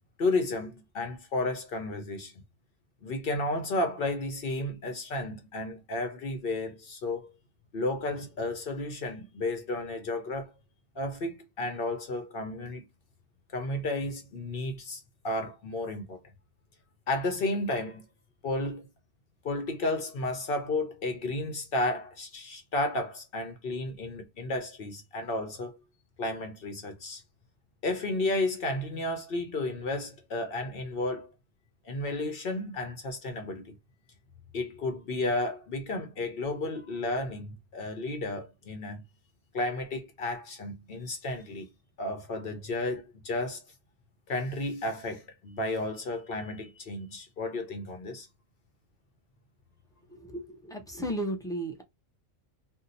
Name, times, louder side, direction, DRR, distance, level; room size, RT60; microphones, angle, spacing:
voice 1, 0.2-2.3 3.0-7.3 7.7-10.5 10.9-12.9 13.5-16.2 17.1-18.0 18.4-18.9 19.4-25.8 26.2-27.2 27.8-31.3 31.8-33.7 34.5-39.0 39.5-41.7 42.0-43.7 44.3-48.3, left 2 dB, 60° left, 0.9 m, -32 dB
voice 2, 50.1-51.8, right 1 dB, 5° left, 0.5 m, -34 dB
2.7 x 2.1 x 3.9 m
omnidirectional pair, 1.1 m